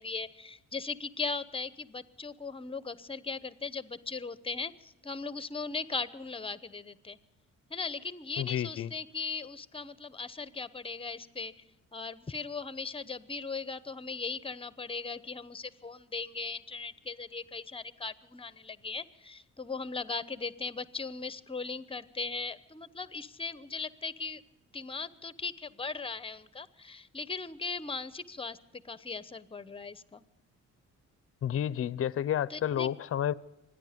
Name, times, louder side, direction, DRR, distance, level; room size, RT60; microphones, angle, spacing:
voice 1, 0.0-7.2 7.7-11.5 11.9-24.4 24.7-30.2 32.5-32.9, left 4 dB, 20° left, 16 dB, 0.9 m, -38 dB
voice 2, 8.4-8.9 31.4-33.3, left 10 dB, 45° left, 19 dB, 0.7 m, -30 dB
26.0 x 10.0 x 5.1 m, 0.94 s
cardioid pair, 90°, 30 cm